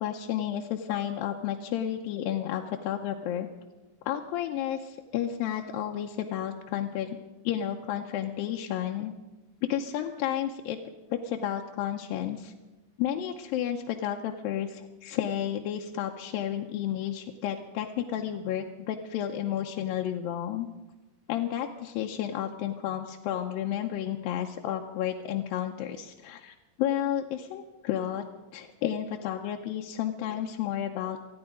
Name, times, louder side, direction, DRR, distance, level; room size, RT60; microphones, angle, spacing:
voice 1, 0.0-3.5 4.1-7.1 7.4-9.1 9.7-10.8 11.1-12.5 13.0-20.7 21.3-28.2 28.5-31.2, left 10 dB, 85° left, 2 dB, 2.5 m, -31 dB
28.5 x 9.7 x 5.1 m, 1.1 s
omnidirectional pair, 4.1 m